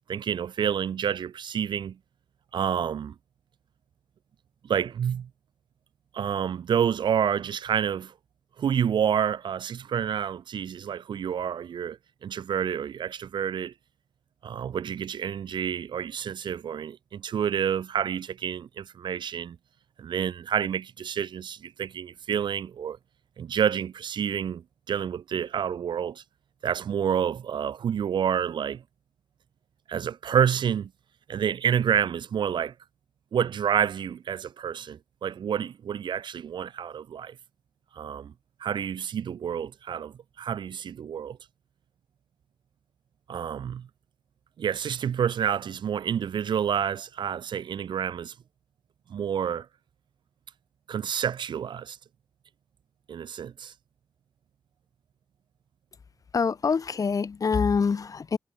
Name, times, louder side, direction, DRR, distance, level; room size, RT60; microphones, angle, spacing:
voice 1, 0.1-2.0 2.5-3.1 4.6-5.3 6.1-8.1 8.6-13.7 14.4-19.6 20.0-23.0 23.4-26.2 26.6-28.8 29.9-30.9 31.3-32.7 33.3-37.4 37.9-38.3 38.6-41.4 43.3-43.9 44.6-48.3 49.1-49.7 50.9-52.0 53.1-53.7, right 8 dB, 85° right, 0.7 m, -28 dB
voice 2, 56.3-58.4, left 5 dB, 50° left, 1.9 m, -25 dB
wide cardioid pair, 145°, 8 cm